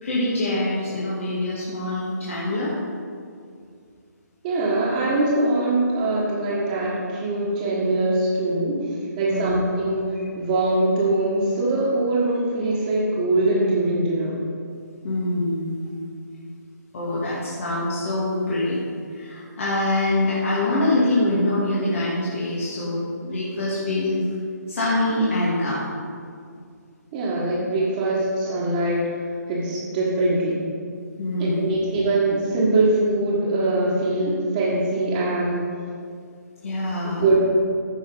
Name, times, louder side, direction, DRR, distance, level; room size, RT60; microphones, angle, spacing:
voice 1, 0.0-2.7 9.3-9.5 15.0-15.9 16.9-18.8 19.1-24.2 24.7-25.8 31.2-31.8 36.6-37.3, left 1 dB, 45° left, -7 dB, 2.2 m, -24 dB
voice 2, 4.4-14.4 27.1-29.1 29.5-30.6 31.4-35.7 37.0-37.4, right 2 dB, 25° right, -8 dB, 1.8 m, -22 dB
14.5 x 5.8 x 4.0 m, 2.2 s
figure-of-eight pair, 140°, 10 cm